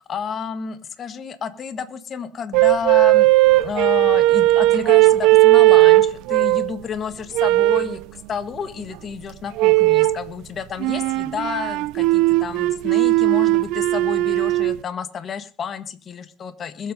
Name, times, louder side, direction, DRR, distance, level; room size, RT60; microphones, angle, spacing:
voice 1, 0.0-8.0 8.3-16.9, left 6 dB, 40° left, 12 dB, 1.5 m, -30 dB
sound 1, 2.5-6.7 7.3-8.0 9.6-10.2 10.8-14.8, right 18 dB, 80° right, 0.7 m, -16 dB
21.5 x 7.8 x 5.2 m, 0.36 s
cardioid pair, 135°, 0 cm